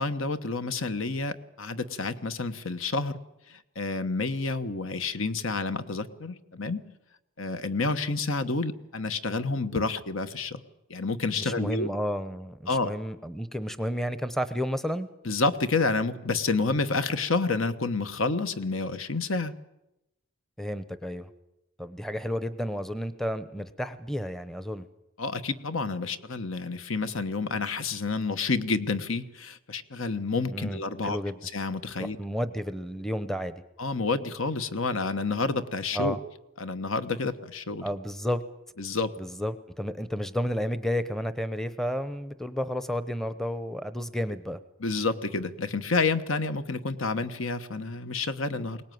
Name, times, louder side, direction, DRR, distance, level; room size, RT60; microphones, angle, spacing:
voice 1, 0.0-3.2 3.5-6.8 7.4-10.6 10.9-11.9 12.7-12.9 15.2-19.6 25.2-32.2 33.8-36.2 36.6-37.9 38.8-39.1 44.8-48.9, left 3 dB, 70° left, 10 dB, 1.2 m, -29 dB
voice 2, 11.4-15.1 20.6-21.3 21.8-24.9 30.5-31.4 32.0-33.6 35.9-36.2 37.8-38.4 39.2-44.6, equal, ahead, 13 dB, 0.8 m, -31 dB
22.5 x 19.0 x 9.4 m, 0.90 s
head